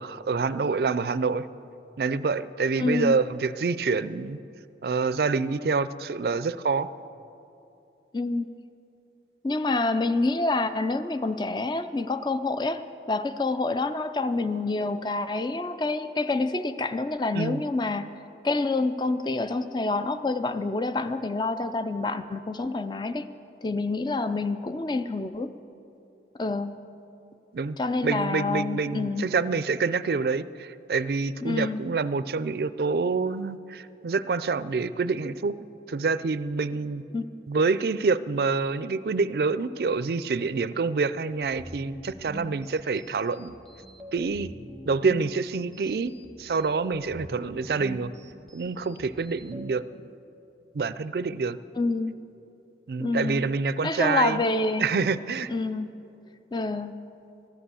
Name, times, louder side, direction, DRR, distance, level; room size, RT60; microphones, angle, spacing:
voice 1, 0.0-1.5 2.0-4.4 4.8-6.9 17.3-17.6 27.5-27.8 28.0-35.6 35.9-37.0 37.5-43.5 44.1-44.5 44.8-46.1 46.4-48.1 48.5-49.8 50.7-51.6 52.9-54.4 54.8-55.5, right 4 dB, 60° right, 15 dB, 0.4 m, -27 dB
voice 2, 2.8-3.2 8.1-8.5 9.4-18.1 18.4-23.3 23.6-25.5 26.4-26.8 27.8-29.3 31.4-31.8 37.1-37.3 51.8-52.1 53.0-53.4 53.8-54.9 55.5-56.0 56.5-57.0, left 3 dB, 25° left, 11 dB, 0.4 m, -27 dB
sound 1, 41.4-49.7, right 1 dB, ahead, 1.0 m, -45 dB
14.5 x 11.5 x 7.0 m, 2.7 s
head